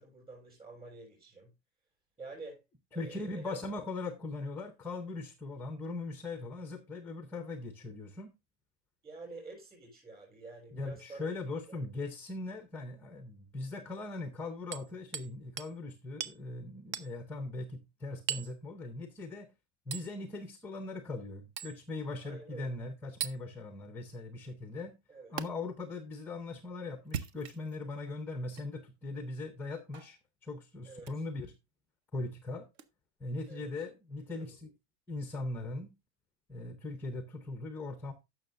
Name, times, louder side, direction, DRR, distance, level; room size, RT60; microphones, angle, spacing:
voice 1, 0.0-1.5 2.2-2.6 2.9-3.8 9.0-11.3 11.7-11.8 22.2-22.7 25.1-25.3 30.8-31.1 33.5-33.7 34.4-34.5, right 3 dB, 15° right, 6.7 m, -48 dB
voice 2, 2.9-8.3 10.7-19.5 19.9-24.9 25.3-31.5 32.1-32.7 33.2-34.7 35.1-35.9 36.5-38.1, left 2 dB, 5° left, 0.5 m, -40 dB
Hammer, 14.7-15.3 15.6-15.7 16.2-16.4 16.9-17.1 18.3-18.6 19.9-20.1 21.6-21.8 23.2-23.4 25.4-25.5 27.0-27.8 28.5-28.7 29.9-30.1 31.0-31.2 32.8-32.9, right 8 dB, 45° right, 0.8 m, -38 dB
16.0 x 6.3 x 2.5 m
supercardioid pair, 165°, 34 cm